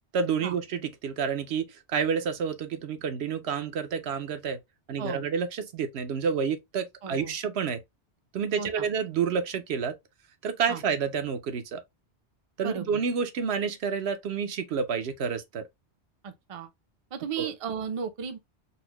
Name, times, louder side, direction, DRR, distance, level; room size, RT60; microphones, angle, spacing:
voice 1, 0.1-4.6 4.9-7.8 8.3-9.9 10.4-11.8 12.6-15.6 17.4-17.5, right 6 dB, 70° right, 0.9 m, -29 dB
voice 2, 7.0-7.3 8.6-8.9 10.7-10.8 12.6-13.0 16.2-16.7 17.1-18.4, right 7 dB, 40° right, 0.5 m, -35 dB
4.1 x 2.0 x 2.9 m
omnidirectional pair, 1.1 m